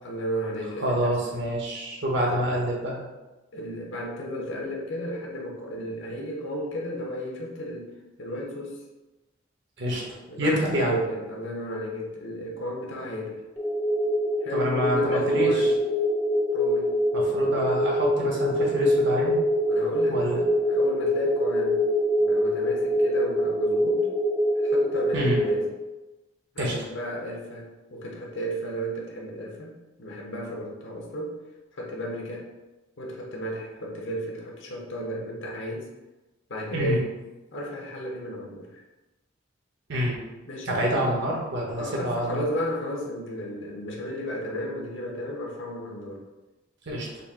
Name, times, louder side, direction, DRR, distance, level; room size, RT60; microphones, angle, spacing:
voice 1, 0.0-1.3 3.5-7.9 8.2-8.8 10.3-13.4 14.4-15.7 16.5-17.0 19.7-21.8 22.2-24.1 24.6-25.7 26.5-29.7 30.0-31.4 31.7-32.5 33.0-35.9 36.5-37.1 37.5-38.7 40.5-40.9 41.8-46.2, equal, 70° left, -2 dB, 0.9 m, -33 dB
voice 2, 0.8-3.0 9.8-10.0 10.4-11.0 14.5-15.7 17.1-19.4 20.1-20.4 25.1-25.4 26.6-26.7 36.7-37.0 39.9-40.2 40.7-42.4 46.9-47.1, equal, 60° right, -2 dB, 0.9 m, -27 dB
sound 1, 13.6-25.6, equal, 5° left, 0.5 m, -24 dB
4.1 x 2.4 x 3.5 m, 1.1 s
head